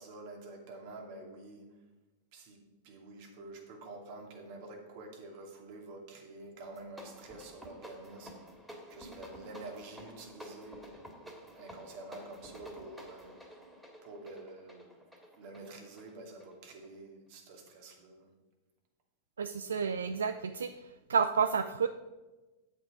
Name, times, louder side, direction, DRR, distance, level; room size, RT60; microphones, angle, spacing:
voice 1, 0.0-1.7 2.3-2.6 2.8-8.5 8.9-11.0 11.5-13.3 14.0-14.9 15.3-18.3, right 2 dB, 55° right, 2 dB, 2.4 m, -48 dB
sound 1, 6.6-17.0, equal, 5° right, 2.3 m, -51 dB
voice 2, 19.4-21.9, right 6 dB, 85° right, 10 dB, 0.4 m, -30 dB
8.3 x 8.3 x 4.9 m, 1.1 s
hypercardioid pair, 105°, 0 cm